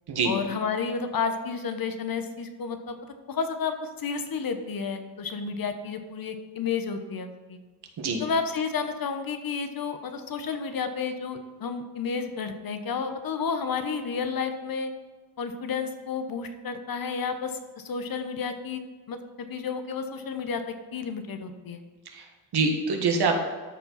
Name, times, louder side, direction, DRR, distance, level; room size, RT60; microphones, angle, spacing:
voice 1, 0.2-3.0 3.3-7.6 8.2-14.9 15.4-18.8 19.1-21.8, left 5 dB, 50° left, 7 dB, 1.0 m, -31 dB
voice 2, 22.0-23.4, right 4 dB, 60° right, 4 dB, 1.6 m, -25 dB
13.0 x 4.5 x 4.1 m, 1.4 s
cardioid pair, 85°, 43 cm